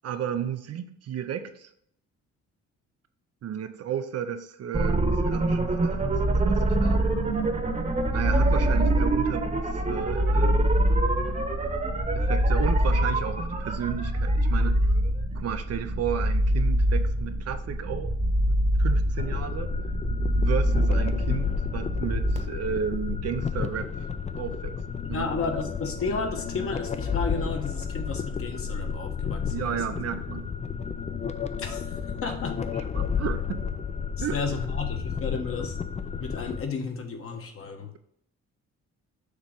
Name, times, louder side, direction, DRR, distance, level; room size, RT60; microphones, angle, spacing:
voice 1, 0.0-1.7 3.4-7.1 8.1-10.8 12.1-14.8 15.3-18.1 18.4-19.7 20.4-24.1 24.3-24.8 25.1-25.3 29.5-30.5 32.3-32.4 32.9-33.7 34.2-34.4, right 8 dB, 55° right, 9 dB, 0.6 m, -33 dB
sound 1, 4.7-22.4, right 1 dB, 25° right, 1.1 m, -24 dB
sound 2, 19.2-36.6, left 6 dB, 25° left, 0.4 m, -32 dB
voice 2, 25.0-29.8 31.6-31.9 32.2-32.6 34.2-35.8 36.2-37.9, left 4 dB, 45° left, 4 dB, 1.2 m, -33 dB
6.6 x 3.0 x 5.1 m, 0.70 s
cardioid pair, 90°, 30 cm